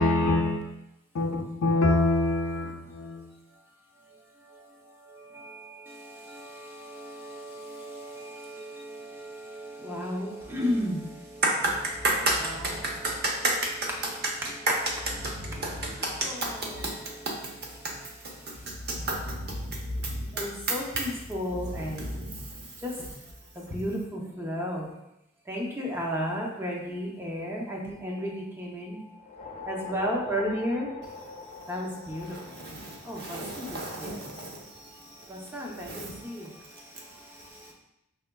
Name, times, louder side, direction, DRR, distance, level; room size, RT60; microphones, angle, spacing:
voice 1, 0.0-0.6 1.2-3.3, left 2 dB, 85° left, 0.5 m, -25 dB
voice 2, 4.1-11.4 16.2-16.5 16.8-16.9 18.4-18.7 20.3-22.1 22.8-22.9 23.5-24.9 25.5-29.2 29.6-30.9 31.7-34.2 34.6-37.7, equal, 10° right, 0.6 m, -34 dB
voice 3, 11.4-14.3 14.7-18.0 18.2-21.1 21.4-23.1 31.3-31.8 32.1-37.7, right 2 dB, 50° right, 0.8 m, -33 dB
sound 1, 29.1-33.7, left 4 dB, 30° left, 0.5 m, -43 dB
4.8 x 3.2 x 2.2 m
head